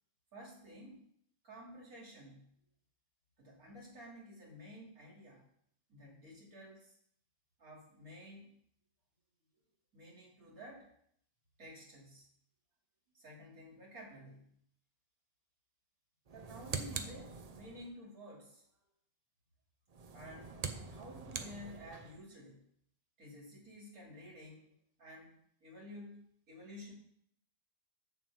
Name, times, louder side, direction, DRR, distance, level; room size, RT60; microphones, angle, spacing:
voice 1, 0.3-1.0 1.4-2.5 3.4-5.4 5.9-6.9 7.6-8.5 9.9-10.9 11.6-12.3 13.1-14.5 16.3-18.6 20.1-20.6 20.9-22.6 23.2-24.7 25.0-26.9, equal, 85° right, -3 dB, 3.0 m, -52 dB
sound 1, 16.3-17.9 19.9-22.2, right 5 dB, 50° right, 0.4 m, -44 dB
7.7 x 6.9 x 4.9 m, 0.67 s
omnidirectional pair, 1.5 m